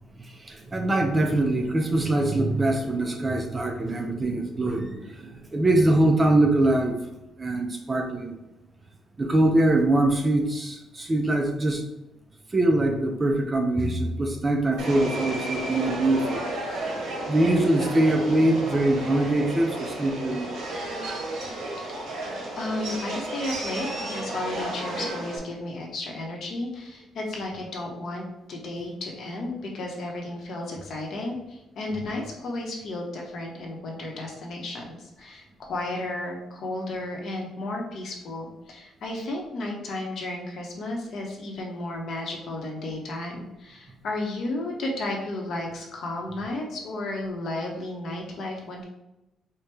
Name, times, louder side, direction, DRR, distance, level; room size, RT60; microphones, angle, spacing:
voice 1, 0.2-7.0 7.4-8.4 9.2-11.8 12.5-16.4 17.3-20.5 21.5-21.8, right 1 dB, 15° right, 3 dB, 0.3 m, -23 dB
Subway metro underground, 14.8-25.4, right 1 dB, 75° right, 1.1 m, -32 dB
voice 2, 22.6-48.8, left 2 dB, 50° left, 0 dB, 0.8 m, -33 dB
4.4 x 2.1 x 3.2 m, 0.95 s
cardioid pair, 175°, 0 cm